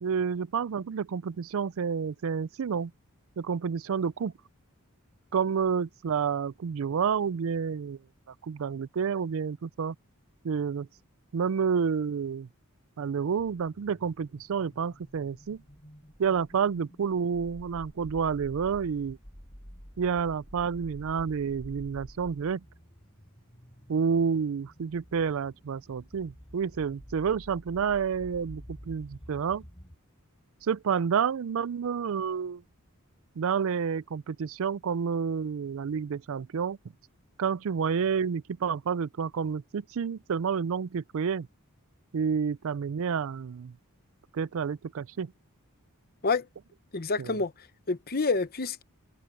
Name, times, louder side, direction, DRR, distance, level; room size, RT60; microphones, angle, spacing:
voice 1, 0.0-2.9 3.4-4.3 5.3-8.0 8.4-10.0 10.4-10.9 11.3-12.5 13.0-15.6 16.2-19.2 20.0-22.6 23.9-29.6 30.6-32.6 33.4-36.8 37.4-41.5 42.1-43.7 44.3-45.3 47.2-47.4, right 6 dB, 60° right, 0.4 m, -29 dB
sound 1, 13.4-30.0, equal, 25° left, 6.3 m, -50 dB
voice 2, 46.9-48.8, left 4 dB, 45° left, 0.9 m, -28 dB
head